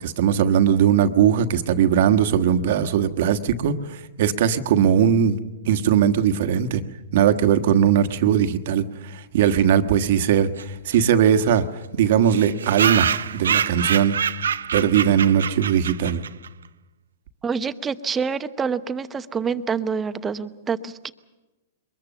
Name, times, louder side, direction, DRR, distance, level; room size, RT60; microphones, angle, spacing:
voice 1, 0.0-5.3 5.6-6.8 7.1-11.6 11.9-14.2 14.7-16.2, right 8 dB, 60° right, 8 dB, 1.4 m, -19 dB
sound 1, 10.6-10.7 10.9-11.0 11.3-11.4 11.6-11.7 12.3-16.5, right 7 dB, 85° right, 0.7 m, -25 dB
voice 2, 17.4-21.1, right 6 dB, 15° right, 11 dB, 0.9 m, -27 dB
23.0 x 21.0 x 7.1 m, 1.1 s
hypercardioid pair, 125°, 0 cm